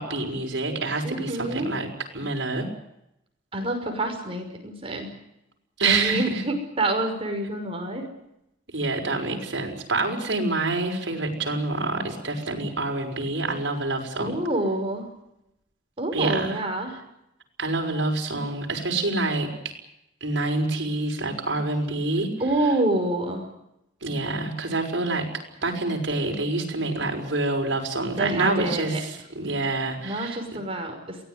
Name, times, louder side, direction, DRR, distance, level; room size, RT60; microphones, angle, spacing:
voice 1, 0.0-1.9 2.1-2.7 5.8-6.4 8.7-14.3 16.1-16.6 17.6-19.5 20.2-22.3 24.0-25.3 25.6-30.4, right 2 dB, 70° right, 2 dB, 5.9 m, -27 dB
voice 2, 1.0-1.7 3.5-5.1 5.8-8.1 14.2-15.1 16.0-16.9 22.4-23.4 28.2-29.0 30.0-31.2, right 1 dB, 30° right, 3 dB, 5.8 m, -27 dB
23.0 x 18.0 x 9.7 m, 0.83 s
head